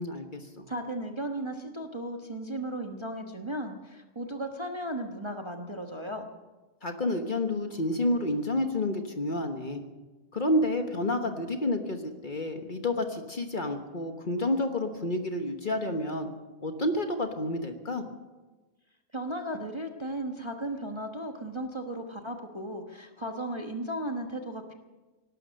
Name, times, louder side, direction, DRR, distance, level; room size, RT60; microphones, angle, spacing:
voice 1, 0.0-0.6 6.8-9.8 10.3-16.3 16.6-18.0, left 1 dB, 35° left, 5 dB, 1.3 m, -29 dB
voice 2, 0.7-6.3 19.1-24.7, right 1 dB, 20° right, 3 dB, 1.1 m, -35 dB
18.0 x 12.0 x 6.5 m, 1.2 s
omnidirectional pair, 1.5 m